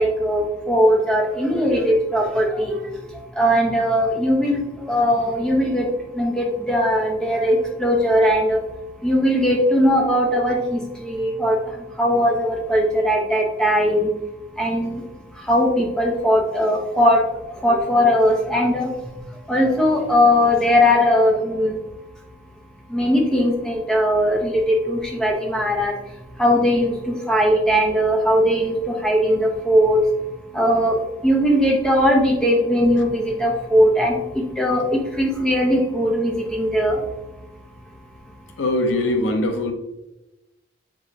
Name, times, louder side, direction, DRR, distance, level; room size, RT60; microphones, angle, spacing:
voice 1, 0.0-2.8 3.4-5.9 6.2-8.6 9.0-11.6 12.0-14.1 14.6-15.0 15.5-17.2 17.6-18.9 19.5-21.8 22.9-25.9 26.4-26.9 27.3-28.8 29.0-30.0 30.5-31.0 31.2-34.1 34.6-34.8 35.2-37.0, equal, 5° left, -2 dB, 0.8 m, -19 dB
voice 2, 38.6-39.7, left 1 dB, 85° left, 5 dB, 0.6 m, -21 dB
4.7 x 3.9 x 2.8 m, 0.97 s
head